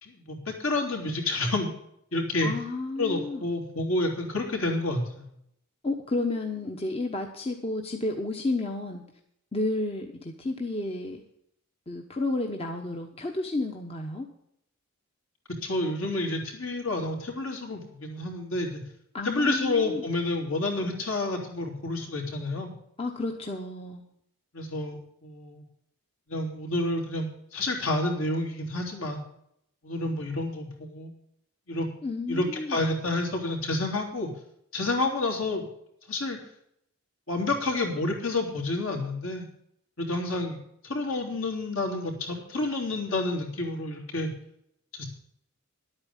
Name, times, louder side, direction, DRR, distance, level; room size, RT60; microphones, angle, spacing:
voice 1, 0.0-1.7 2.1-2.5 3.0-5.3 15.6-18.8 19.2-22.7 24.5-25.6 26.3-29.2 29.8-31.1 31.7-31.9 32.3-34.3 34.7-35.6 36.1-36.4 37.3-39.4 40.0-40.6 40.8-44.3 44.9-45.1, left 2 dB, 65° left, 2 dB, 3.2 m, -29 dB
voice 2, 2.4-3.4 5.8-9.0 9.5-11.2 11.9-14.3 19.1-20.0 23.0-24.0 32.0-32.8, left 2 dB, 25° left, 3 dB, 1.0 m, -31 dB
11.0 x 8.8 x 7.0 m, 0.73 s
head